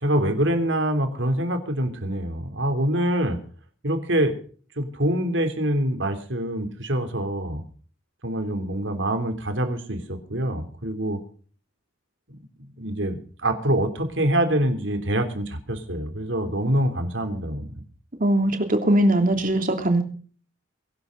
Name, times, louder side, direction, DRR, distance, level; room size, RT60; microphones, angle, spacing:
voice 1, 0.0-3.4 3.8-4.3 4.8-7.6 8.2-11.2 12.8-17.8, right 1 dB, 80° right, 6 dB, 3.4 m, -25 dB
voice 2, 18.2-20.0, right 1 dB, 45° right, 5 dB, 3.0 m, -20 dB
23.0 x 12.0 x 4.0 m, 0.43 s
head